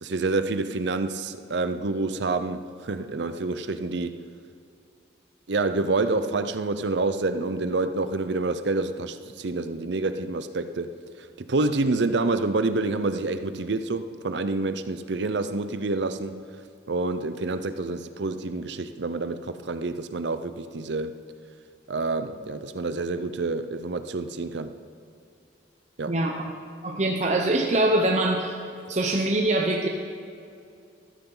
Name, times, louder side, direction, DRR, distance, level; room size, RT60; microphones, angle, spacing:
voice 1, 0.0-4.2 5.5-10.9 11.2-16.4 16.9-21.2 21.9-24.7 26.0-26.2, right 3 dB, 65° right, 10 dB, 0.6 m, -28 dB
voice 2, 26.8-28.5 28.9-29.9, right 2 dB, 35° right, 1 dB, 0.8 m, -23 dB
14.0 x 13.5 x 3.9 m, 2.5 s
head